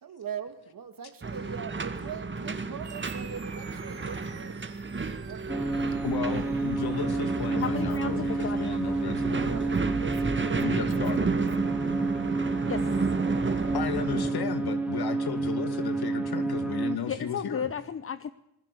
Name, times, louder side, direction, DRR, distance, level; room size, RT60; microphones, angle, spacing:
voice 1, 0.0-4.6 5.3-5.6 7.5-7.8 8.0-8.2 9.3-10.9 11.2-11.8, right 7 dB, 50° right, 8 dB, 2.4 m, -41 dB
sound 1, 1.2-14.3, right 4 dB, 25° right, 2.0 m, -32 dB
sound 2, 2.8-11.7, right 7 dB, 75° right, 6.0 m, -53 dB
sound 3, 5.5-17.0, right 3 dB, 5° right, 2.1 m, -30 dB
voice 2, 6.0-9.6 10.6-11.3 13.7-17.7, left 7 dB, 55° left, 8 dB, 2.5 m, -34 dB
voice 3, 7.6-8.9 12.7-12.9 17.1-18.3, left 7 dB, 30° left, 13 dB, 0.8 m, -33 dB
26.5 x 19.5 x 6.9 m, 0.88 s
cardioid pair, 110°, 44 cm